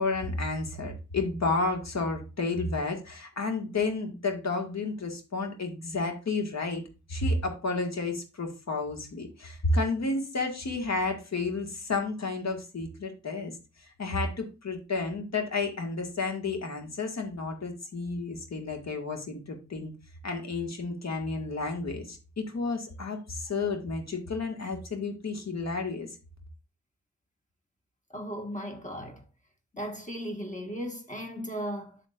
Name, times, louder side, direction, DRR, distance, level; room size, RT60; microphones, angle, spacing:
voice 1, 0.0-6.8 7.1-13.5 14.0-19.9 20.2-26.1, left 3 dB, 65° left, 1.9 m, -31 dB
voice 2, 28.1-29.2 29.7-32.0, equal, 25° left, 1.7 m, -36 dB
7.6 x 7.4 x 2.5 m
cardioid pair, 65°, 29 cm